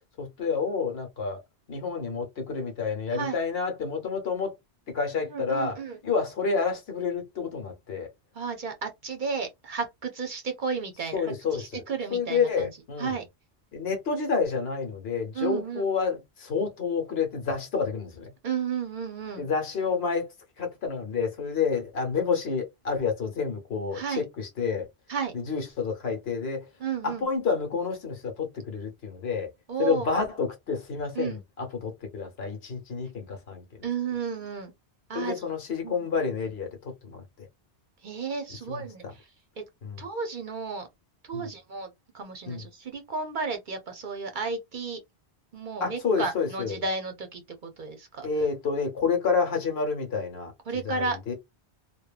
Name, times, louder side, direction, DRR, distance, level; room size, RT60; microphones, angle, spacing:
voice 1, 0.2-1.4 1.7-4.5 4.9-5.8 6.0-8.1 11.1-11.8 12.1-13.2 13.7-18.3 19.4-20.3 20.6-24.9 25.3-26.7 27.0-29.5 29.8-33.6 35.1-37.2 38.7-39.1 39.8-40.0 41.3-41.5 42.5-42.6 45.8-46.8 48.2-51.3, left 5 dB, 65° left, 1.1 m, -29 dB
voice 2, 5.3-6.0 8.3-12.7 13.0-13.2 15.3-15.9 18.4-19.5 23.9-24.2 25.1-25.3 26.8-27.3 29.7-30.1 31.1-31.4 33.8-34.7 35.1-35.4 35.8-36.1 38.0-39.3 39.6-39.7 40.0-40.9 41.2-45.0 45.5-48.3 50.7-51.2, right 5 dB, 55° right, 0.7 m, -33 dB
2.8 x 2.2 x 2.3 m
omnidirectional pair, 1.1 m